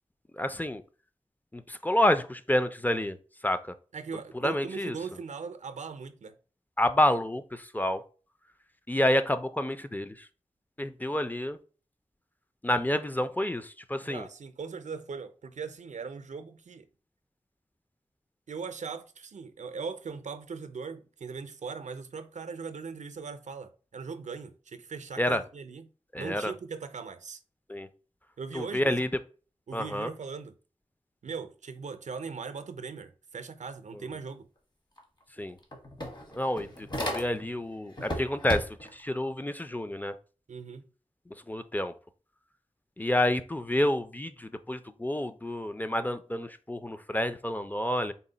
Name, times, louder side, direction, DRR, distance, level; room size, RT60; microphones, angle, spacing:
voice 1, 0.4-0.8 1.5-3.2 3.4-3.7 4.4-5.0 6.8-8.0 8.9-10.1 10.8-11.6 12.6-14.2 25.2-25.4 26.1-26.5 27.7-27.9 28.5-29.1 29.7-30.1 35.4-35.6 36.4-36.7 37.0-38.6 38.9-40.1 41.5-41.9 43.0-48.1, left 1 dB, 15° left, 0.4 m, -28 dB
voice 2, 3.9-6.4 14.0-16.9 18.5-25.9 26.2-27.4 28.4-29.1 29.7-30.5 31.2-34.5 40.5-40.8, right 5 dB, 90° right, 0.5 m, -39 dB
sound 1, 35.0-35.1 35.4-37.6 38.0-39.0, equal, 40° left, 1.1 m, -35 dB
4.0 x 2.1 x 3.9 m
wide cardioid pair, 55°, 12 cm